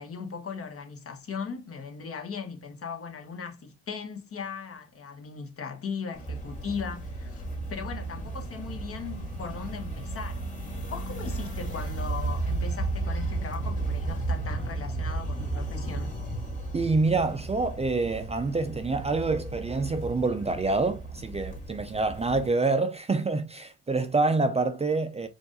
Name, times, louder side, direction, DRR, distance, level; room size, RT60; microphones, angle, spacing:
voice 1, 0.0-16.1, left 6 dB, 50° left, 1.2 m, -38 dB
sound 1, 6.2-22.5, right 2 dB, 25° left, 1.9 m, -34 dB
voice 2, 16.7-25.3, right 3 dB, 20° right, 0.5 m, -26 dB
4.6 x 2.6 x 3.9 m
cardioid pair, 90°, 30 cm